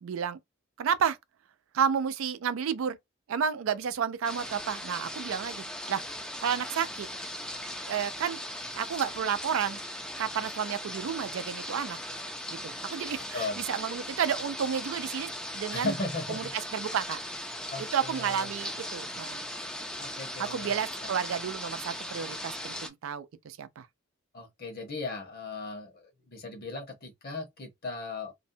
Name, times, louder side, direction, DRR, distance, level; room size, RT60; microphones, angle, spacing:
voice 1, 0.0-0.4 0.8-1.2 1.7-3.0 3.3-6.0 6.4-7.1 7.9-8.4 8.7-9.8 10.2-12.0 12.5-15.9 16.3-16.4 16.7-17.2 17.9-19.4 20.4-23.9, right 7 dB, 85° right, 0.4 m, -31 dB
sound 1, 4.2-22.9, left 1 dB, 5° left, 0.4 m, -38 dB
voice 2, 15.7-16.5 17.7-18.5 20.0-20.8 24.3-28.3, left 3 dB, 50° left, 1.0 m, -37 dB
2.6 x 2.1 x 2.6 m
head